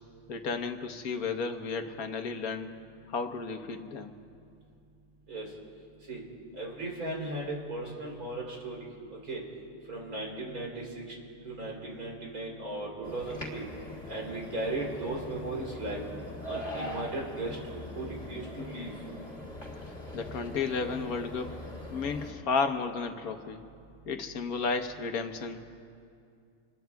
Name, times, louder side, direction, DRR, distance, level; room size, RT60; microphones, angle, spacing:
voice 1, 0.3-2.7 3.1-4.1 20.1-21.6 21.9-23.6 24.1-25.6, left 4 dB, 85° left, 6 dB, 1.5 m, -33 dB
voice 2, 6.6-8.8 9.3-9.4 9.9-11.0 11.4-13.6 14.1-16.0 16.5-17.6 17.9-18.9, right 2 dB, 90° right, -3 dB, 3.9 m, -36 dB
sound 1, 13.0-22.3, left 1 dB, 35° left, 2.8 m, -42 dB
28.5 x 21.5 x 2.3 m, 2.4 s
omnidirectional pair, 1.5 m